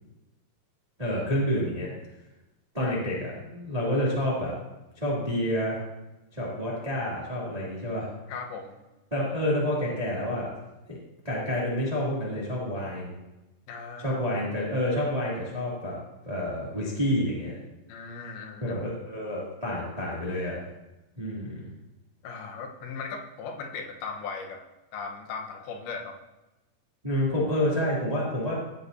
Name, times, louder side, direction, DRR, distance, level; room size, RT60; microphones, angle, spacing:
voice 1, 1.0-1.9 2.7-4.5 5.0-5.8 6.3-8.1 9.1-10.5 10.9-11.0 11.2-13.1 14.0-16.0 16.2-17.6 18.6-20.6 21.2-21.6 27.0-28.6, left 1 dB, 15° right, -7 dB, 1.8 m, -28 dB
voice 2, 8.3-8.7 13.7-14.2 17.9-18.8 22.2-26.2, left 5 dB, 75° left, 2 dB, 2.8 m, -38 dB
16.5 x 8.5 x 2.7 m, 1.0 s
omnidirectional pair, 4.7 m